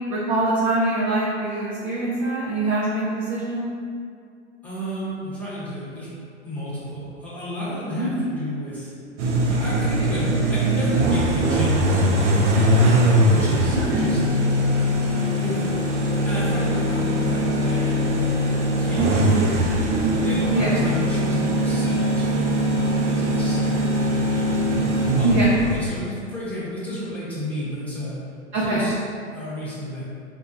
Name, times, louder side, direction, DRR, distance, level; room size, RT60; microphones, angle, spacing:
voice 1, 0.1-3.7 8.0-8.1 13.7-14.0 19.2-19.5 20.5-20.7 25.2-25.5 28.5-28.8, right 2 dB, 25° right, -6 dB, 0.4 m, -23 dB
voice 2, 4.6-6.1 6.4-8.9 9.5-12.9 13.3-14.2 15.4-15.9 16.2-19.8 20.2-24.6 25.1-25.3 25.7-28.2 28.5-28.9 29.3-30.0, equal, 5° left, -10 dB, 1.1 m, -32 dB
sound 1, 9.2-26.0, equal, 70° right, 0.7 m, -21 dB
3.9 x 2.6 x 2.7 m, 2.3 s
hypercardioid pair, 110°, 36 cm